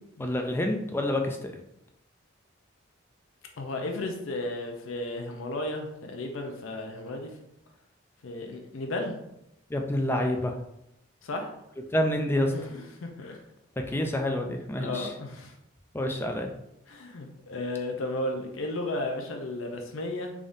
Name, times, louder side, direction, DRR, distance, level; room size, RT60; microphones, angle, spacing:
voice 1, 0.2-1.5 9.7-10.6 11.9-12.5 13.9-15.1 15.9-16.5, left 1 dB, 10° left, 3 dB, 0.3 m, -28 dB
voice 2, 3.6-7.3 8.2-9.2 11.2-11.5 12.5-13.4 14.8-15.5 16.9-20.3, left 2 dB, 85° left, 4 dB, 0.5 m, -34 dB
3.5 x 3.5 x 2.6 m, 0.81 s
head